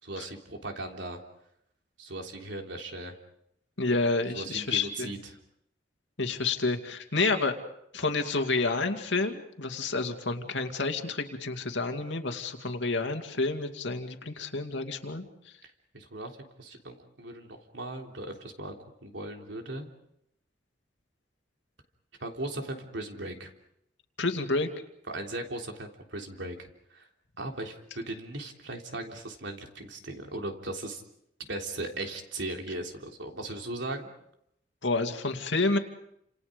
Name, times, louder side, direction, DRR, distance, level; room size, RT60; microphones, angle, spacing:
voice 1, 0.0-1.2 2.0-3.1 4.3-5.2 15.6-16.3 16.6-19.9 22.2-23.5 25.1-27.1 27.4-31.0 31.5-34.1, right 2 dB, 85° right, 3 dB, 3.5 m, -38 dB
voice 2, 3.8-5.1 6.2-7.5 7.9-15.2 24.2-24.7 34.8-35.8, left 3 dB, 85° left, 6 dB, 2.4 m, -29 dB
30.0 x 27.5 x 5.2 m, 0.76 s
head